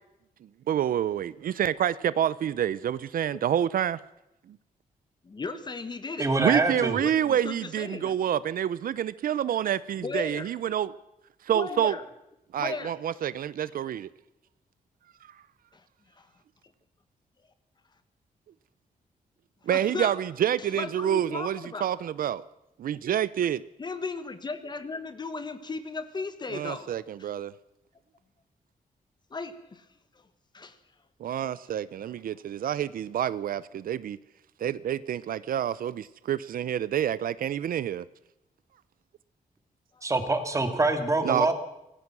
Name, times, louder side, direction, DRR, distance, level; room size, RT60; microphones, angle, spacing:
voice 1, 0.7-4.0 6.4-10.9 11.4-11.9 12.5-14.1 19.7-22.4 22.8-23.6 26.5-27.5 31.2-34.2 34.6-38.0 41.2-41.5, right 10 dB, 75° right, 0.7 m, -28 dB
voice 2, 5.2-8.2 9.9-10.6 11.5-12.0 12.6-12.9 15.7-15.8 16.2-16.3 19.7-20.1 20.6-22.0 23.8-27.3 29.3-29.9 30.1-30.3 30.5-30.8 39.9-40.1, left 4 dB, 30° left, 1.5 m, -36 dB
voice 3, 6.2-7.0 40.0-41.5, right 2 dB, 20° right, 2.6 m, -25 dB
26.0 x 17.5 x 6.2 m
wide cardioid pair, 160°, 15 cm